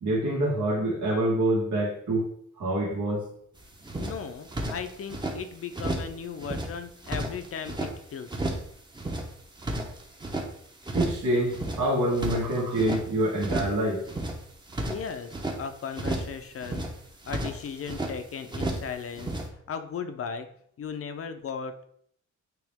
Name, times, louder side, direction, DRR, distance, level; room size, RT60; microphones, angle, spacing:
voice 1, 0.0-2.3 2.6-3.3 10.9-14.0, right 1 dB, 80° right, -4 dB, 2.4 m, -26 dB
sound 1, 3.6-3.7 3.8-5.4 5.7-6.1 6.4-7.9 8.3-8.7 8.9-10.5 10.8-11.2 11.5-13.0 13.4-13.8 14.0-15.6 15.9-16.4 16.6-18.1 18.5-18.9 19.2-19.5, right 1 dB, 15° right, 0.8 m, -32 dB
voice 2, 4.0-8.3 14.9-16.9 17.3-19.4 19.7-20.5 20.8-21.7, left 6 dB, 50° left, 9 dB, 0.6 m, -36 dB
9.1 x 3.0 x 3.5 m, 0.66 s
wide cardioid pair, 155°, 29 cm